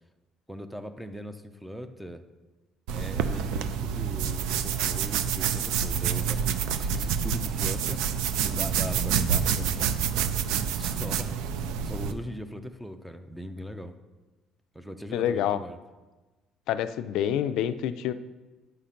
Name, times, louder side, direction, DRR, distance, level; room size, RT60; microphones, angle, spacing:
voice 1, 0.5-2.2 2.9-9.8 10.6-11.3 11.8-13.9 14.7-15.8, equal, ahead, 9 dB, 0.4 m, -40 dB
sound 1, 2.9-12.1, right 7 dB, 85° right, 0.5 m, -28 dB
voice 2, 15.1-15.6 16.7-18.1, left 10 dB, 60° left, 11 dB, 0.4 m, -27 dB
9.9 x 5.7 x 5.1 m, 1.2 s
cardioid pair, 180°, 0 cm